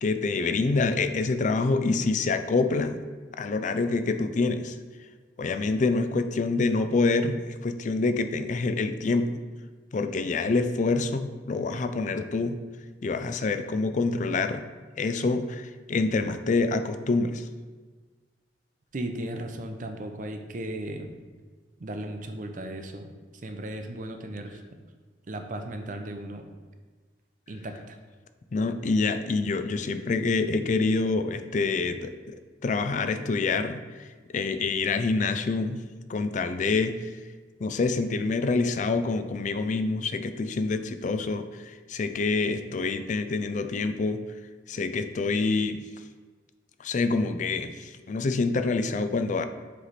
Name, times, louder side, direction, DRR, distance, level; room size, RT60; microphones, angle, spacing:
voice 1, 0.0-3.0 3.4-4.7 5.4-9.4 9.9-12.6 13.0-14.6 15.0-17.4 28.5-32.4 32.6-33.8 34.3-35.8 36.1-37.1 37.6-41.4 41.9-44.2 44.7-45.8 46.8-49.5, left 3 dB, 45° left, 9 dB, 0.4 m, -26 dB
voice 2, 18.9-21.1 21.8-23.1 23.4-24.6 25.3-26.4 27.5-28.0, right 1 dB, 45° right, 5 dB, 0.6 m, -36 dB
7.6 x 3.3 x 4.1 m, 1.4 s
head